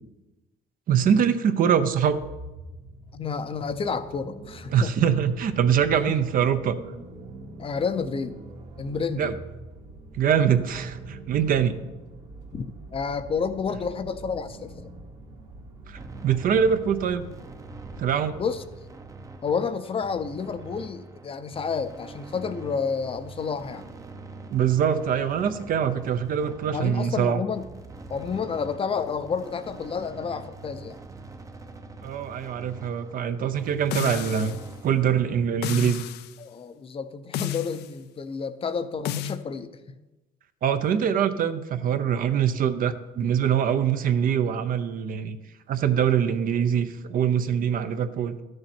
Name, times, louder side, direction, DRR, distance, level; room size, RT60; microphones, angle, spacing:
voice 1, 0.9-2.2 4.7-6.8 9.2-9.3 10.1-11.7 15.9-17.2 18.0-18.4 24.5-27.4 32.0-36.0 40.6-45.4 45.7-48.4, right 8 dB, 55° right, 10 dB, 0.7 m, -23 dB
sound 1, 2.1-18.8, right 2 dB, 85° right, 2.3 m, -44 dB
voice 2, 3.1-4.9 6.1-6.2 7.6-8.4 8.8-9.3 12.5-12.7 12.9-14.9 18.4-18.6 19.4-23.9 26.7-27.7 28.1-31.0 36.4-39.7, left 5 dB, 35° left, 11 dB, 0.6 m, -30 dB
sound 2, 15.9-34.9, right 3 dB, 20° right, 0.7 m, -44 dB
sound 3, 33.9-34.7 35.6-36.3 37.3-37.9 39.0-39.4, left 12 dB, 75° left, 0.5 m, -32 dB
12.5 x 6.6 x 4.4 m, 1.1 s
cardioid pair, 110°, 17 cm